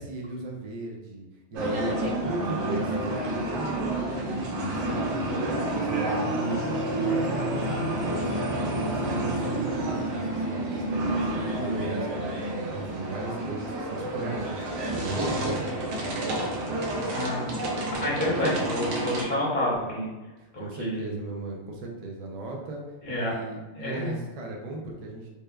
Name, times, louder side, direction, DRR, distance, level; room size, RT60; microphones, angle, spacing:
voice 1, 0.0-8.6 8.8-16.0 20.4-22.8 23.1-25.3, right 2 dB, 60° right, -1 dB, 0.4 m, -37 dB
sound 1, 1.6-19.2, right 1 dB, 85° right, 0.9 m, -29 dB
voice 2, 17.1-17.5 18.0-20.1 20.5-21.2 23.0-23.3 23.8-24.2, left 1 dB, 45° left, -8 dB, 1.0 m, -29 dB
3.0 x 2.1 x 2.2 m, 1.1 s
omnidirectional pair, 1.2 m